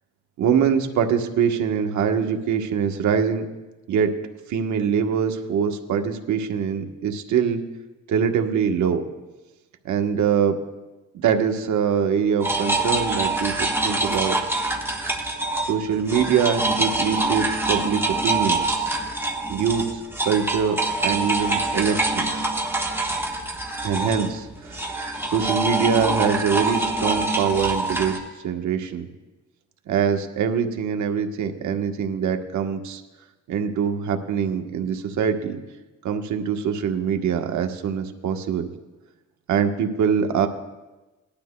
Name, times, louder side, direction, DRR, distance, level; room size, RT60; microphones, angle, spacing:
voice 1, 0.4-3.5 3.9-4.1 4.5-7.6 8.1-9.0 9.8-10.6 11.2-14.3 15.6-18.9 19.5-22.5 23.8-29.1 29.9-33.0 33.5-35.6 36.0-38.7 39.5-40.5, right 7 dB, 70° right, 5 dB, 1.1 m, -23 dB
sound 1, 12.4-15.8 16.1-28.2, right 2 dB, 10° right, 1.3 m, -25 dB
19.0 x 12.0 x 2.2 m, 1.1 s
cardioid pair, 90°, 30 cm